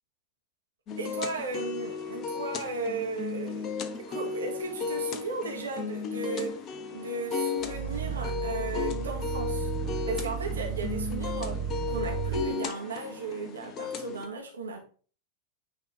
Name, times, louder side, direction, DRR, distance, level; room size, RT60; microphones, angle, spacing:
sound 1, 0.9-14.3, left 6 dB, 30° left, 0.9 m, -35 dB
voice 1, 1.0-6.6 6.9-9.7 10.1-14.8, right 3 dB, 70° right, 2.0 m, -35 dB
Growling, 7.6-12.5, right 7 dB, 40° right, 0.9 m, -34 dB
9.2 x 4.2 x 4.1 m
figure-of-eight pair, 90°, 0 cm